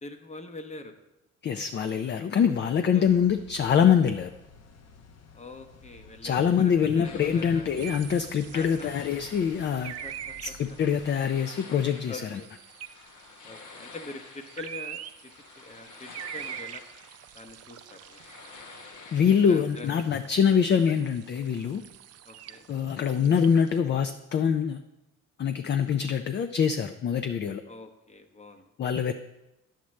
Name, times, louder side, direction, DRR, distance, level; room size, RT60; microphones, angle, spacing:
voice 1, 0.0-0.9 2.9-3.1 5.3-7.7 8.5-9.3 10.0-10.8 12.1-12.5 13.4-16.8 17.3-18.5 19.4-20.0 22.2-22.7 27.7-28.6, left 3 dB, 25° left, 7 dB, 0.8 m, -44 dB
voice 2, 1.4-4.3 6.2-9.9 10.4-12.4 19.1-21.8 22.7-24.8 25.4-27.6 28.8-29.1, left 7 dB, 40° left, 8 dB, 0.4 m, -24 dB
sound 1, 3.1-11.3, left 3 dB, 55° left, 0.8 m, -52 dB
sound 2, 7.0-19.7, left 4 dB, 75° left, 1.1 m, -50 dB
sound 3, 7.8-23.8, right 10 dB, 55° right, 0.4 m, -45 dB
9.8 x 7.3 x 3.2 m, 0.94 s
cardioid pair, 90°, 30 cm